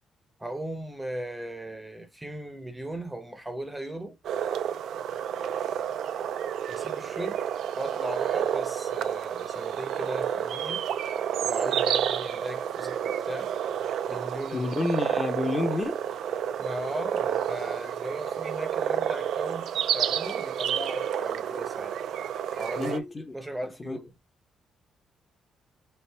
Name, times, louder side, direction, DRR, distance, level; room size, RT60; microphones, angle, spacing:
voice 1, 0.4-4.2 6.7-7.4 7.8-10.9 11.4-13.5 14.1-14.7 16.6-21.9 22.5-24.1, right 1 dB, 10° right, 0.7 m, -37 dB
sound 1, 4.2-23.0, right 9 dB, 75° right, 0.3 m, -30 dB
voice 2, 14.5-16.0 22.8-23.3 23.8-24.0, left 2 dB, 25° left, 0.8 m, -29 dB
4.5 x 2.6 x 3.3 m
cardioid pair, 90°, 0 cm